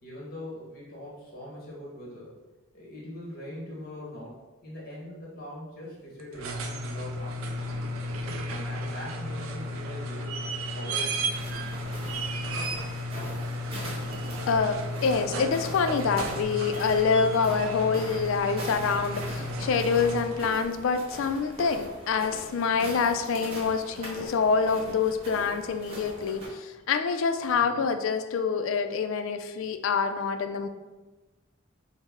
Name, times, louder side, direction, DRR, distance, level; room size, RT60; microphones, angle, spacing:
voice 1, 0.0-2.4 2.7-7.9 8.5-10.5 10.7-11.5 27.5-27.8, equal, 45° left, -4 dB, 1.2 m, -42 dB
sound 1, 6.2-20.6 22.3-22.4, equal, 75° right, 0.4 m, -33 dB
sound 2, 11.3-26.5, equal, 30° right, 0.9 m, -42 dB
voice 2, 14.5-30.7, left 5 dB, 70° left, 9 dB, 0.3 m, -26 dB
5.3 x 2.0 x 3.5 m, 1.2 s
head